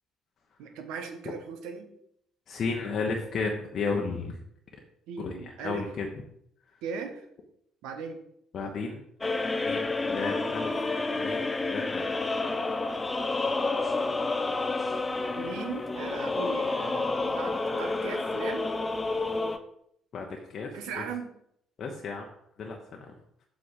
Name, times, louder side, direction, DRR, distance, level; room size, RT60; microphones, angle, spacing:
voice 1, 0.6-1.9 5.1-5.9 6.8-7.2 7.8-8.2 15.3-18.7 20.7-21.3, right 5 dB, 60° right, 6 dB, 1.0 m, -38 dB
voice 2, 2.5-4.4 5.2-6.1 8.5-9.0 9.6-12.1 20.1-20.7 21.8-22.3 22.6-23.1, left 4 dB, 45° left, 0 dB, 0.9 m, -33 dB
sound 1, 9.2-19.6, left 3 dB, 20° left, 0.7 m, -29 dB
7.5 x 6.2 x 3.8 m, 0.72 s
figure-of-eight pair, 50°, 0 cm